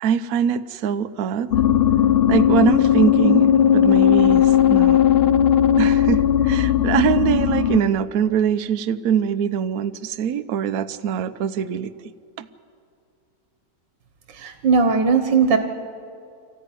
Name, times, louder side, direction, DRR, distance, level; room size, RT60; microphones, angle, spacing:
voice 1, 0.0-1.5 2.3-5.0 5.8-11.9 12.4-12.5, right 8 dB, 60° right, 10 dB, 1.1 m, -22 dB
sound 1, 1.5-7.8, left 10 dB, 80° left, 0.5 m, -17 dB
voice 2, 14.3-15.6, right 5 dB, 85° right, 6 dB, 1.9 m, -18 dB
25.5 x 14.5 x 10.0 m, 2.4 s
omnidirectional pair, 1.9 m